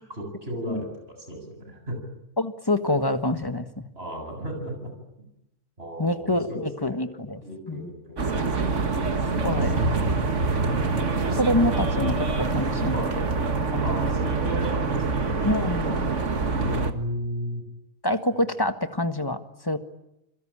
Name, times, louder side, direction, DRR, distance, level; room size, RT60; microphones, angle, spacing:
voice 1, 0.0-2.0 3.9-4.9 5.2-5.3 5.8-7.1 7.4-8.7 9.1-9.9 12.9-13.1 13.8-15.4 16.4-17.6, equal, 50° right, 4 dB, 8.0 m, -35 dB
voice 2, 2.4-3.9 6.0-7.4 7.7-7.9 9.4-9.7 11.4-13.0 15.4-16.0 18.0-19.8, left 1 dB, 15° left, 8 dB, 1.6 m, -26 dB
sound 1, 8.2-16.9, right 3 dB, 65° right, 2.1 m, -25 dB
29.5 x 22.5 x 8.8 m, 0.87 s
omnidirectional pair, 1.4 m